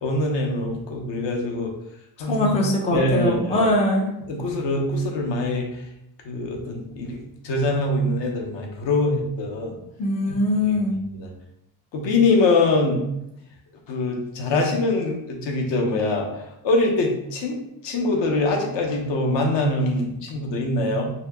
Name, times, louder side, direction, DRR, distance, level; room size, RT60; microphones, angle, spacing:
voice 1, 0.0-1.7 2.2-2.5 2.9-3.7 4.3-5.7 6.2-9.8 11.1-11.3 11.9-13.0 13.9-16.3 16.6-17.6 17.8-21.1, left 2 dB, 60° left, 1 dB, 0.8 m, -23 dB
voice 2, 2.2-4.1 10.0-11.0, left 1 dB, 15° left, 0 dB, 0.3 m, -22 dB
2.8 x 2.8 x 3.4 m, 0.82 s
cardioid pair, 155°, 50 cm